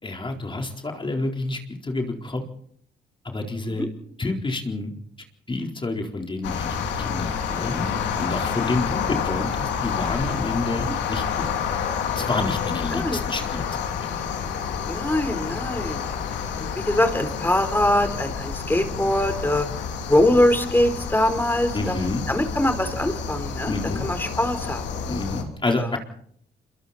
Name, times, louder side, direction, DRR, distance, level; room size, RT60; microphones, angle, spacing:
voice 1, 0.0-2.4 3.2-3.9 4.2-5.0 5.5-11.5 12.1-13.9 21.7-22.2 23.6-24.1 25.1-26.0, left 2 dB, 25° left, 2 dB, 4.3 m, -29 dB
sound 1, 6.4-25.4, left 6 dB, 80° left, 3.1 m, -29 dB
voice 2, 12.9-13.2 14.9-16.0 16.6-19.7 20.1-21.9 22.3-24.8 25.8-25.9, left 1 dB, 10° left, 9 dB, 4.3 m, -23 dB
27.0 x 22.5 x 4.3 m, 0.66 s
supercardioid pair, 65°, 18 cm